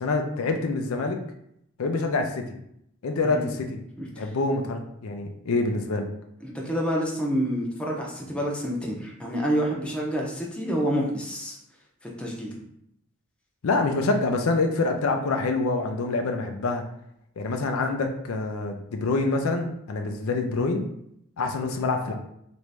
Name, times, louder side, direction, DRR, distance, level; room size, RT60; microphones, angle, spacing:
voice 1, 0.0-1.2 1.8-2.4 3.0-3.8 4.2-6.1 13.6-16.8 17.4-20.9 21.4-22.1, left 3 dB, 85° left, 4 dB, 0.5 m, -26 dB
voice 2, 6.4-11.6 12.0-12.5, equal, 5° left, -3 dB, 0.6 m, -28 dB
3.0 x 2.6 x 3.3 m, 0.75 s
head